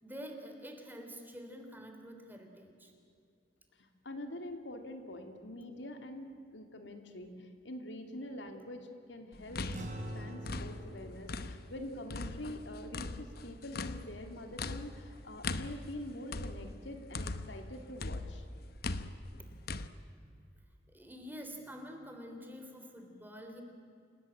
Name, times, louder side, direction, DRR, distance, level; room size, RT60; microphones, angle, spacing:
voice 1, 0.0-2.9 19.5-20.5 20.9-23.6, equal, 10° right, 4 dB, 3.2 m, -48 dB
voice 2, 3.8-9.9 10.1-18.4, left 1 dB, 90° left, 5 dB, 2.7 m, -45 dB
sound 1, 9.3-11.8 12.1-17.7 18.0-19.9, left 3 dB, 60° left, 1.0 m, -40 dB
sound 2, 9.7-14.4, equal, 45° right, 3.5 m, -47 dB
28.5 x 18.0 x 8.7 m, 2.5 s
head